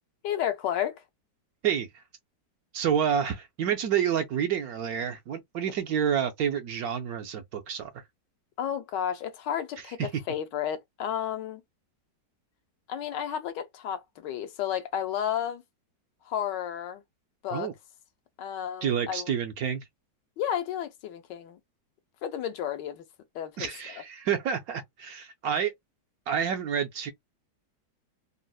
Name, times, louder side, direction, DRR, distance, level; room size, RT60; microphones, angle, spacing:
voice 1, 0.2-1.0 8.6-11.6 12.9-15.6 16.2-17.0 17.4-17.7 18.4-19.3 20.4-21.6 22.2-23.0 23.3-23.7, left 9 dB, 80° left, 1.3 m, -32 dB
voice 2, 1.6-2.0 2.7-8.0 10.0-10.1 17.5-17.7 18.8-19.8 23.6-25.7 26.3-27.1, right 8 dB, 70° right, 0.9 m, -29 dB
3.8 x 2.0 x 2.3 m
omnidirectional pair, 1.9 m